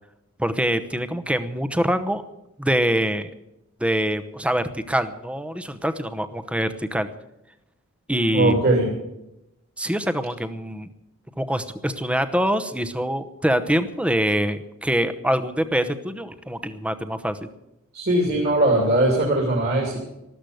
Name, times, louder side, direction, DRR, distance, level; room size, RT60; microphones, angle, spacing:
voice 1, 0.4-2.2 2.6-3.3 3.8-7.1 8.1-8.7 9.8-10.9 11.4-17.5, equal, 5° right, 11 dB, 0.9 m, -24 dB
voice 2, 8.3-8.9 17.9-20.0, right 1 dB, 45° right, -1 dB, 3.0 m, -20 dB
13.5 x 13.5 x 7.9 m, 0.88 s
head